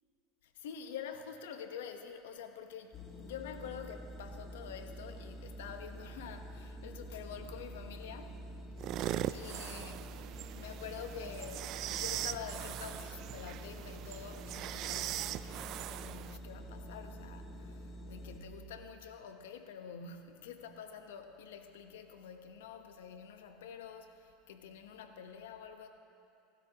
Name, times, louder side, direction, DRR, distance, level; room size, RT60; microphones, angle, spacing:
voice 1, 0.4-8.4 9.3-25.9, left 7 dB, 85° left, 7 dB, 1.1 m, -47 dB
sound 1, 2.9-18.4, equal, 35° left, 2.1 m, -47 dB
sound 2, 8.8-16.4, right 13 dB, 55° right, 0.4 m, -40 dB
25.5 x 13.0 x 3.0 m, 2.7 s
supercardioid pair, 110°, 0 cm